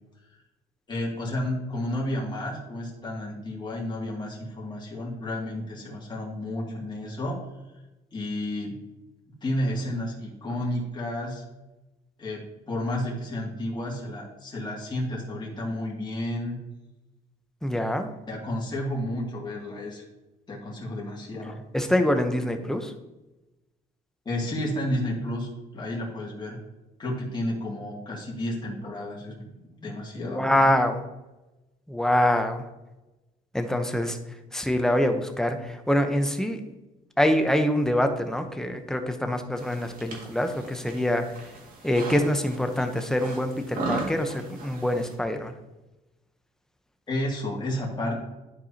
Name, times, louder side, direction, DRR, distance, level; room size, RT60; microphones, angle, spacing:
voice 1, 0.9-7.4 8.1-8.8 9.4-11.4 12.2-16.6 18.3-20.1 20.5-21.6 24.3-26.6 27.0-29.5 29.8-30.7 47.1-48.1, left 1 dB, 25° left, -3 dB, 2.2 m, -31 dB
voice 2, 17.6-18.1 21.7-22.9 30.2-31.0 31.9-32.6 33.5-34.2 34.5-36.6 37.2-41.2 41.8-45.5, left 1 dB, 5° left, 6 dB, 0.8 m, -25 dB
sound 1, 39.6-45.1, right 2 dB, 55° right, 2.0 m, -37 dB
12.0 x 4.8 x 2.8 m, 1.0 s
cardioid pair, 110°, 17 cm